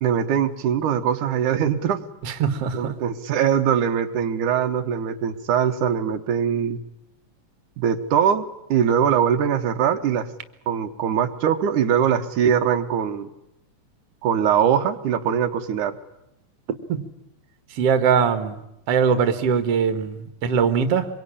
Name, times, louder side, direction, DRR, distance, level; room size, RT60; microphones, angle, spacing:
voice 1, 0.0-2.0 2.7-6.8 7.8-10.3 10.7-13.3 14.2-16.0, right 8 dB, 85° right, 6 dB, 2.8 m, -22 dB
voice 2, 2.2-2.9 16.9-17.0 17.7-18.6 18.9-21.1, right 6 dB, 55° right, 10 dB, 2.5 m, -21 dB
25.0 x 23.0 x 10.0 m, 0.82 s
omnidirectional pair, 3.4 m